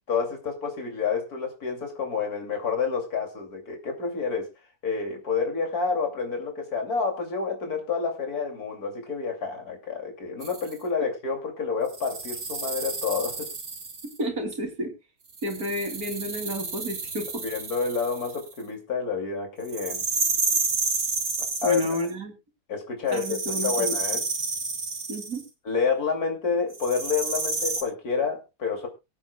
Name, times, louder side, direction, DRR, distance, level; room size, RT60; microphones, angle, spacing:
voice 1, 0.1-4.5 4.8-13.5 17.4-20.0 21.6-21.8 22.7-24.2 25.6-28.9, left 5 dB, 70° left, 2 dB, 3.2 m, -29 dB
sound 1, 10.4-10.7 11.9-14.2 15.3-18.5 19.7-22.1 23.1-25.4 26.7-27.8, right 4 dB, 50° right, 2.0 m, -30 dB
voice 2, 14.2-14.9 15.4-17.4 21.6-22.3 23.1-23.9 25.1-25.4, equal, 70° right, 3 dB, 3.3 m, -30 dB
24.0 x 8.5 x 2.3 m, 0.26 s
omnidirectional pair, 1.6 m